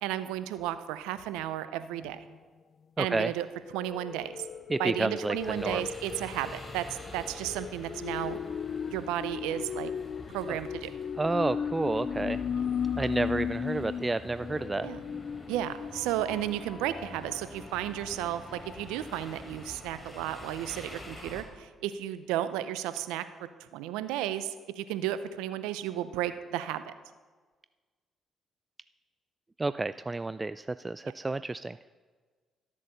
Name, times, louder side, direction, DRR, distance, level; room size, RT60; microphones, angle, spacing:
voice 1, 0.0-2.2 3.0-3.5 3.7-4.4 4.8-6.9 7.1-8.4 8.9-9.9 10.3-10.9 12.5-12.6 14.8-15.0 15.5-26.9, right 12 dB, 85° right, 12 dB, 0.6 m, -33 dB
sound 1, 2.0-2.2 3.3-19.2 19.7-19.8 20.0-20.1, left 7 dB, 55° left, 0.4 m, -37 dB
voice 2, 3.0-3.3 4.7-5.8 10.5-10.6 11.2-12.4 13.0-14.9 29.6-31.8, right 2 dB, 25° right, 14 dB, 0.3 m, -30 dB
sound 2, 5.4-21.4, left 1 dB, 25° left, 3.6 m, -46 dB
12.5 x 8.3 x 6.7 m, 1.4 s
hypercardioid pair, 55°, 0 cm